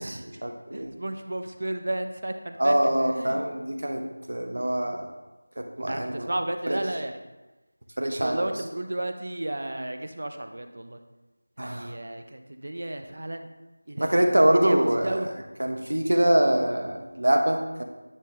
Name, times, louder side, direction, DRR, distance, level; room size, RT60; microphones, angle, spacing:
voice 1, 0.0-0.9 2.6-5.1 5.6-6.3 6.7-6.8 8.0-8.5 11.6-11.9 14.0-15.3 15.6-17.8, right 1 dB, 70° right, 5 dB, 0.9 m, -24 dB
voice 2, 0.7-3.4 5.9-7.2 8.0-11.0 11.6-13.5 13.9-15.3, right 1 dB, 45° right, 7 dB, 0.5 m, -33 dB
9.9 x 3.9 x 3.4 m, 1.1 s
figure-of-eight pair, 180°, 0 cm